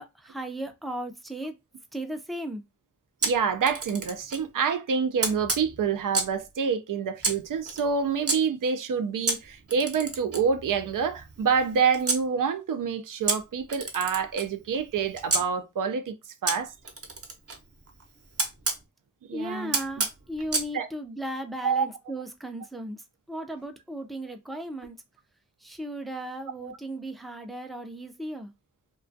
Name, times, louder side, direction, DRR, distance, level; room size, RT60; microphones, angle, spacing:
voice 1, 0.0-1.5 1.9-2.6 19.3-25.0 25.6-28.5, right 1 dB, ahead, 0.4 m, -36 dB
Camera, 3.2-4.5 5.2-6.4 7.2-8.4 9.3-12.2 13.3-15.4 16.5-18.8 19.7-20.7, right 3 dB, 45° right, 0.8 m, -31 dB
voice 2, 3.2-16.2 16.4-16.7 19.3-19.8 20.7-20.9 21.6-21.8 26.6-26.7, right 6 dB, 80° right, 0.5 m, -27 dB
2.3 x 2.2 x 2.5 m
wide cardioid pair, 60°, 31 cm